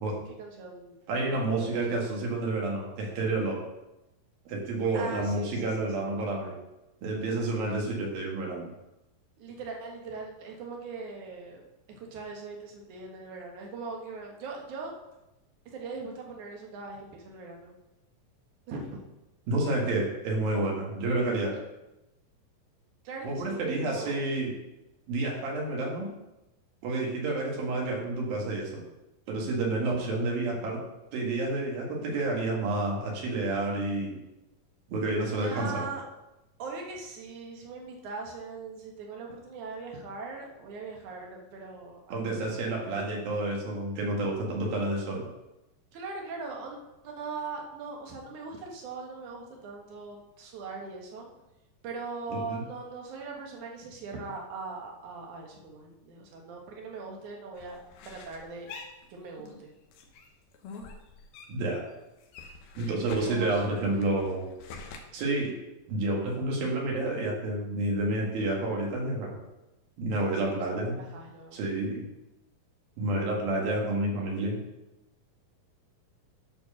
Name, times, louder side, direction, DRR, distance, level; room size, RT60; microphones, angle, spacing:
voice 1, 0.3-1.0 1.6-1.8 4.9-6.1 7.6-7.8 9.4-14.9 15.7-17.7 18.7-19.0 23.0-24.2 29.9-30.1 35.2-36.0 36.6-42.6 45.9-51.3 51.8-57.8 58.0-58.7 59.1-59.7 63.2-63.7 70.1-71.6, right 4 dB, 60° right, 0 dB, 2.8 m, -40 dB
voice 2, 1.1-3.6 4.5-6.5 7.0-8.7 19.5-21.6 23.2-24.5 25.1-26.1 26.8-28.8 29.3-30.8 31.1-34.1 34.9-35.8 42.1-45.2 52.3-52.6 61.5-61.8 62.8-64.4 65.1-65.6 65.9-69.3 70.0-71.1 71.5-72.0 73.0-74.6, right 2 dB, 80° right, -2 dB, 3.7 m, -29 dB
sound 1, 57.5-59.6 59.9-61.8 62.0-65.0, left 4 dB, 85° left, 3.0 m, -46 dB
11.0 x 4.6 x 6.4 m, 0.96 s
omnidirectional pair, 4.1 m